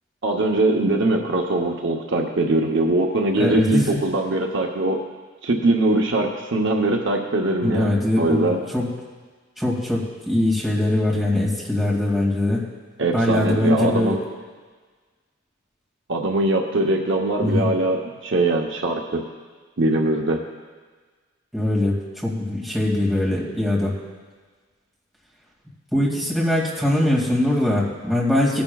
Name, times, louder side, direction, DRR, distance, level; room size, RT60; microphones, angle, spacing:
voice 1, 0.2-5.0 5.4-8.6 13.0-14.2 16.1-19.2 19.8-20.4, right 2 dB, 65° right, 2 dB, 0.9 m, -22 dB
voice 2, 3.3-3.9 7.6-8.9 9.6-12.6 13.1-14.2 17.4-17.7 21.5-24.0 25.9-28.6, left 1 dB, ahead, -5 dB, 2.3 m, -22 dB
18.5 x 10.5 x 2.3 m, 1.4 s
head